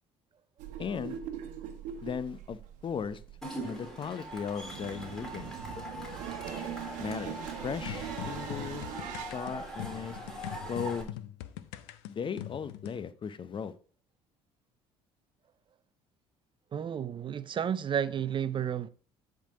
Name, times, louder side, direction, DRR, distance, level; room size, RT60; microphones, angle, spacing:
sound 1, 0.6-11.1, right 10 dB, 65° right, 1.1 m, -42 dB
voice 1, 0.8-1.2 2.0-3.2 3.6-5.5 7.0-8.9 9.3-10.2 10.7-11.1 12.1-13.7, left 7 dB, 40° left, 0.7 m, -37 dB
Cheering / Crowd, 3.4-11.0, right 1 dB, 5° left, 3.1 m, -42 dB
sound 2, 7.9-13.0, left 13 dB, 80° left, 0.6 m, -42 dB
voice 2, 16.7-18.9, right 9 dB, 35° right, 0.5 m, -31 dB
10.0 x 3.8 x 4.8 m
hypercardioid pair, 65°, 14 cm